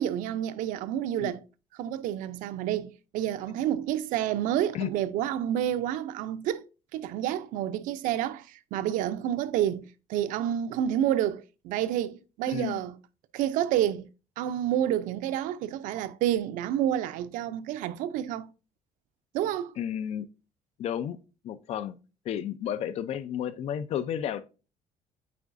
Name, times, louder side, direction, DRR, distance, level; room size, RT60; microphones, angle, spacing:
voice 1, 0.0-1.4 1.8-6.6 6.9-12.9 13.3-14.1 14.4-18.5 19.3-19.7, right 11 dB, 90° right, 0.6 m, -29 dB
voice 2, 12.5-12.8 19.8-20.3 20.8-21.2 21.4-22.0 22.2-24.4, left 9 dB, 55° left, 0.6 m, -32 dB
8.4 x 4.6 x 2.6 m
cardioid pair, 150°, 13 cm